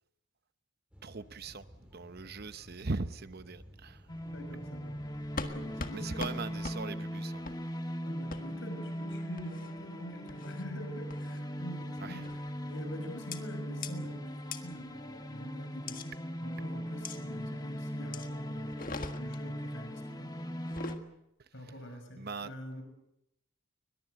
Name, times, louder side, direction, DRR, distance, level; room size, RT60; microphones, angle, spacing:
sound 1, 0.9-6.8, equal, 5° right, 4.4 m, -56 dB
voice 1, 1.0-4.1 5.9-7.5 12.0-12.3 21.4-21.7 22.2-22.5, right 3 dB, 45° right, 12 dB, 0.8 m, -40 dB
sound 2, 4.1-21.0, equal, 20° left, 1.4 m, -39 dB
voice 2, 4.2-5.2 5.5-6.5 8.0-12.4 12.7-16.1 16.4-20.3 21.5-22.8, equal, 55° left, 6 dB, 6.0 m, -46 dB
sound 3, 5.4-5.5 5.8-5.9 6.2-6.3 6.6-6.8 7.4-7.6 8.3-8.4 9.4-9.7 10.3-10.6 11.1-11.4 12.2-12.5 13.3-13.4 13.8-13.9 14.5-14.6 15.9-16.1 17.0-17.2 18.1-18.3 18.7-19.4 20.6-21.0, left 4 dB, 40° left, 1.6 m, -40 dB
21.5 x 21.5 x 7.9 m, 0.83 s
head